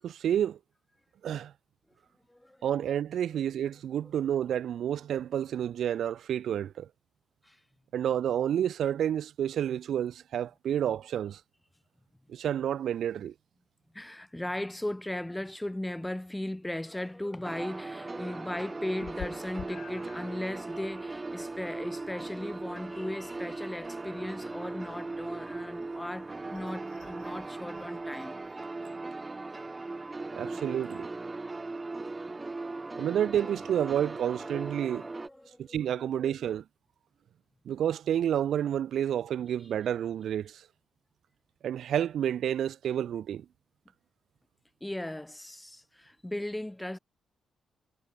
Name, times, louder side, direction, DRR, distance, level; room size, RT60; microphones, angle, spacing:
voice 1, 0.0-0.6 1.2-1.5 2.6-6.9 7.9-11.4 12.3-13.3 30.3-31.1 33.0-35.1 35.6-36.6 37.7-40.7 41.6-43.4, right 10 dB, 75° right, 0.6 m, -30 dB
voice 2, 2.3-2.6 7.4-7.6 13.9-28.4 32.9-33.1 34.3-34.4 34.8-36.1 44.8-47.0, left 1 dB, 10° left, 2.4 m, -37 dB
sound 1, 17.4-35.3, right 3 dB, 20° right, 2.2 m, -39 dB
Meow, 19.0-28.7, left 10 dB, 80° left, 8.0 m, -52 dB
cardioid pair, 95°, 0 cm